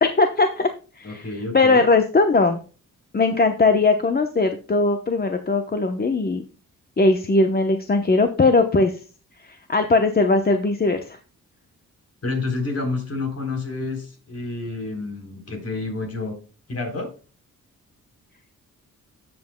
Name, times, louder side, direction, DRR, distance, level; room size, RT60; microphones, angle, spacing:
voice 1, 0.0-0.7 1.0-1.3 1.5-2.6 3.1-6.4 7.0-8.9 9.7-11.2, left 3 dB, 30° left, 6 dB, 0.9 m, -19 dB
voice 2, 1.0-1.8 12.2-16.4 16.7-17.1, left 3 dB, 50° left, 3 dB, 3.7 m, -29 dB
13.0 x 7.8 x 2.2 m, 0.35 s
cardioid pair, 100°, 32 cm